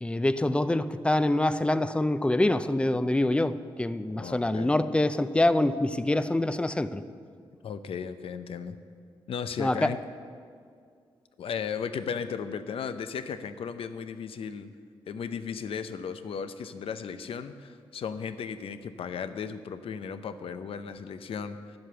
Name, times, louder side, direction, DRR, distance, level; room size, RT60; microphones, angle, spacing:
voice 1, 0.0-7.0 9.6-9.9, left 1 dB, 10° left, 12 dB, 0.5 m, -25 dB
voice 2, 4.1-4.7 7.6-8.8 9.3-10.0 11.4-14.7 15.1-21.8, left 6 dB, 75° left, 10 dB, 0.6 m, -35 dB
11.0 x 7.9 x 6.8 m, 2.2 s
cardioid pair, 55°, 10 cm